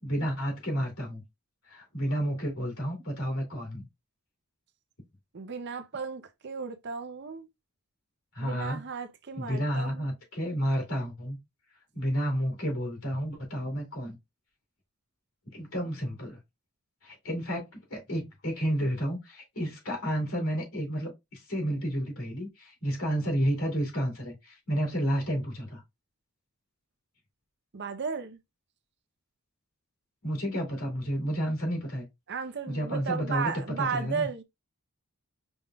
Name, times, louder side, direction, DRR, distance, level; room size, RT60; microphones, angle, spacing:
voice 1, 0.0-1.2 1.7-3.8 8.3-8.8 9.4-11.4 11.9-14.1 15.5-16.4 17.0-25.8 30.2-32.1 32.7-34.3, equal, 65° left, 2.4 m, -31 dB
voice 2, 5.3-7.5 8.4-10.0 27.7-28.4 32.3-34.4, right 5 dB, 50° right, 0.6 m, -34 dB
5.2 x 3.5 x 2.3 m
head